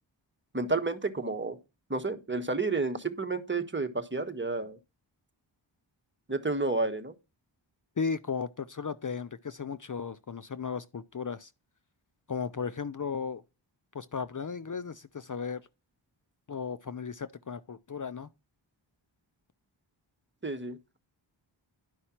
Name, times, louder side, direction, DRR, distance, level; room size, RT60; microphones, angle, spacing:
voice 1, 0.5-1.6 1.9-4.8 6.3-7.1 20.4-20.8, right 3 dB, 25° right, 1.4 m, -30 dB
voice 2, 8.0-11.5 12.3-13.4 13.9-15.6 16.5-18.3, left 5 dB, 40° left, 0.7 m, -35 dB
11.5 x 5.5 x 4.4 m
cardioid pair, 50°, 47 cm